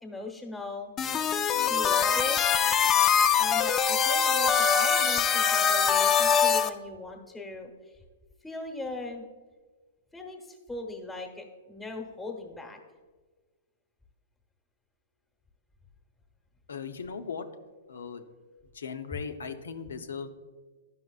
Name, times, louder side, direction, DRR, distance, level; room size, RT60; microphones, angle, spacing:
voice 1, 0.0-0.9 1.7-2.4 3.4-7.7 8.4-9.2 10.1-12.8, left 2 dB, 5° left, 2 dB, 1.0 m, -39 dB
sound 1, 1.0-6.7, left 7 dB, 25° left, 0.4 m, -23 dB
voice 2, 16.7-17.5 17.9-18.2 18.7-20.3, left 6 dB, 85° left, 8 dB, 0.6 m, -38 dB
11.0 x 5.6 x 2.4 m, 1.4 s
hypercardioid pair, 125°, 0 cm